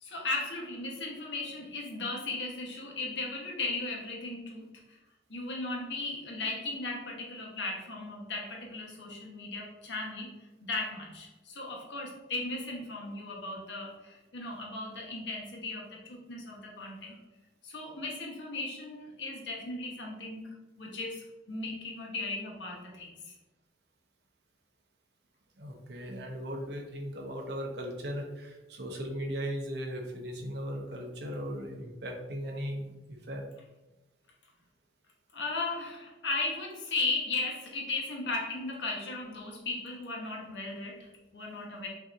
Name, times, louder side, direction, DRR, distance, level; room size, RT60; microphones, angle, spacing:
voice 1, 0.0-5.0 5.3-10.3 10.6-17.2 17.6-23.3 35.3-41.9, left 3 dB, 80° left, -1 dB, 1.0 m, -36 dB
voice 2, 25.6-33.4, equal, 70° right, 1 dB, 0.8 m, -37 dB
5.6 x 2.8 x 2.5 m, 1.1 s
head